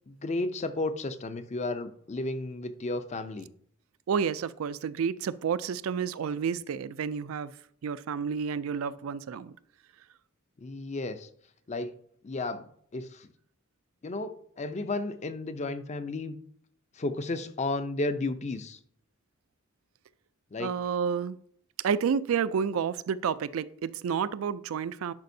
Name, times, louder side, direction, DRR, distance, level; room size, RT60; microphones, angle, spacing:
voice 1, 0.1-3.5 10.6-11.3 11.7-11.9 12.2-12.7 12.9-13.3 14.0-16.4 17.0-18.8 20.5-20.7, left 2 dB, 35° left, 11 dB, 0.5 m, -33 dB
voice 2, 4.1-7.5 7.8-9.5 20.6-21.4 21.8-25.1, right 7 dB, 75° right, 16 dB, 0.4 m, -30 dB
10.5 x 5.2 x 2.7 m, 0.63 s
head